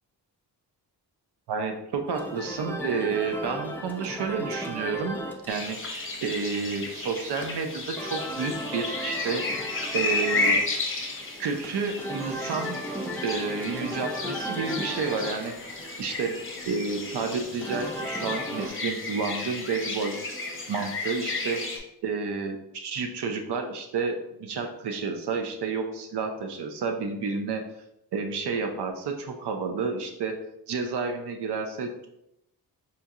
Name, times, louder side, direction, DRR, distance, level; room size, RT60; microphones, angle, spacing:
voice 1, 1.5-5.2 5.5-9.4 9.9-10.6 11.4-12.8 13.2-15.5 16.0-16.4 16.7-21.6 22.0-27.7 28.1-30.4 30.7-32.1, right 5 dB, 85° right, 5 dB, 0.6 m, -30 dB
sound 1, 2.1-18.7, equal, 5° left, 0.5 m, -36 dB
sound 2, 5.5-21.8, left 3 dB, 30° left, 0.8 m, -33 dB
4.3 x 2.6 x 2.4 m, 0.81 s
cardioid pair, 80°, 39 cm